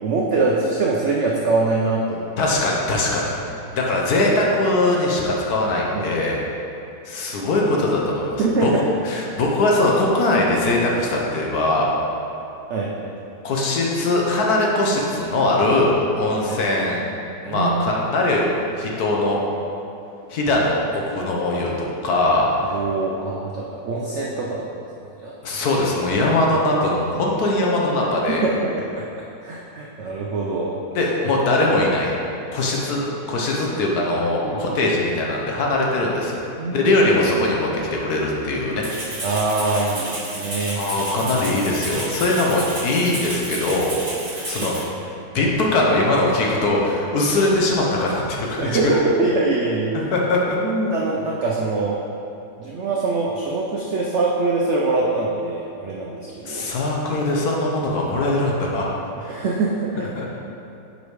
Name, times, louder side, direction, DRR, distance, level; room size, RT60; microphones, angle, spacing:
voice 1, 0.0-2.5 5.9-6.2 8.4-8.8 12.7-13.1 16.5-16.6 17.5-18.0 22.7-24.7 25.2-25.3 28.3-29.0 29.4-30.7 34.4-34.9 36.6-37.1 39.2-40.8 44.3-44.7 45.4-45.5 48.6-49.9 50.6-52.0 52.6-56.7 59.2-60.1, right 3 dB, 80° right, -3 dB, 0.6 m, -23 dB
voice 2, 2.4-3.4 3.7-6.4 7.0-8.7 9.1-11.9 13.4-17.0 17.4-18.5 18.8-19.4 20.3-22.5 25.4-28.5 30.9-32.1 32.5-36.4 36.7-38.8 40.8-44.0 44.3-44.7 45.3-48.9 49.9-50.6 56.5-58.9 60.2-60.3, left 2 dB, 65° left, -2 dB, 1.3 m, -21 dB
Rattle (instrument), 38.8-44.8, right 1 dB, 25° right, 1.5 m, -31 dB
5.3 x 5.0 x 4.7 m, 2.7 s
omnidirectional pair, 1.9 m